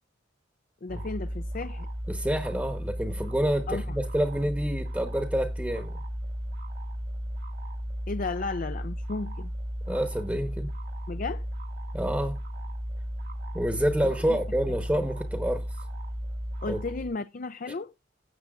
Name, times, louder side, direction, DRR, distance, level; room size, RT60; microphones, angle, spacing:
voice 1, 0.8-1.9 3.7-4.0 8.1-9.5 11.1-11.5 14.0-14.4 14.9-15.1 16.6-17.9, left 3 dB, 50° left, 0.5 m, -34 dB
sound 1, 0.9-17.1, equal, 65° right, 1.6 m, -35 dB
voice 2, 2.1-5.9 9.9-10.7 11.9-12.4 13.5-15.6 16.7-16.8, equal, 10° right, 1.0 m, -28 dB
17.5 x 7.9 x 2.4 m
head